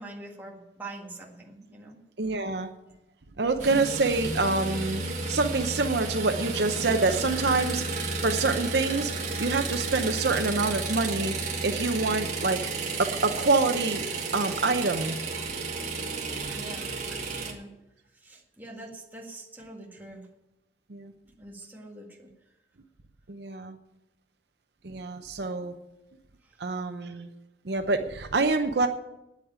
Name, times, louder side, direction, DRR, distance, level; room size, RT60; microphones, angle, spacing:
voice 1, 0.0-2.0 16.5-16.9 17.3-17.7 18.2-20.3 21.4-22.3, right 2 dB, 10° right, -1 dB, 1.8 m, -44 dB
voice 2, 2.2-2.7 3.4-9.1 9.4-11.3 11.6-12.6 13.0-14.1 14.3-15.1 16.5-16.6 20.9-21.1 23.3-23.8 24.8-25.7 26.6-27.3 27.6-28.9, right 3 dB, 60° right, 6 dB, 0.8 m, -26 dB
sound 1, 3.6-17.5, right 3 dB, 40° right, 2.2 m, -32 dB
9.6 x 8.4 x 8.9 m, 0.92 s
head